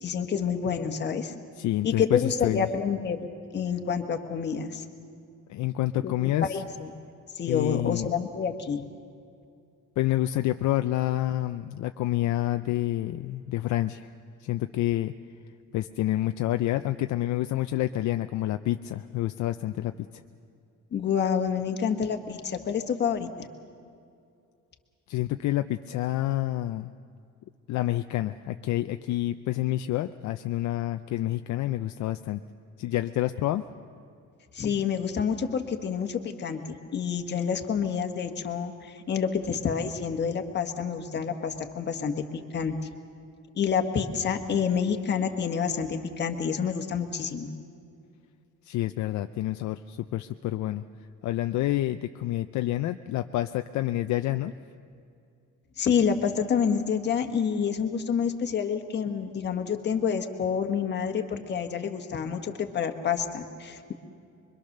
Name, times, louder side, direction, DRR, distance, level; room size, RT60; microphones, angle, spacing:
voice 1, 0.0-1.3 1.8-3.2 3.5-4.8 6.0-6.1 6.5-6.9 7.3-8.8 20.9-23.5 34.5-36.6 36.9-42.7 43.5-47.5 55.8-63.9, left 7 dB, 35° left, 6 dB, 1.5 m, -28 dB
voice 2, 1.6-2.7 5.5-6.6 7.4-8.1 10.0-14.1 14.4-15.1 15.7-19.9 25.1-26.9 27.7-32.4 32.8-33.6 48.7-50.8 51.2-54.5, left 14 dB, 65° left, 8 dB, 0.6 m, -28 dB
25.0 x 23.0 x 6.6 m, 2.4 s
cardioid pair, 160°, 31 cm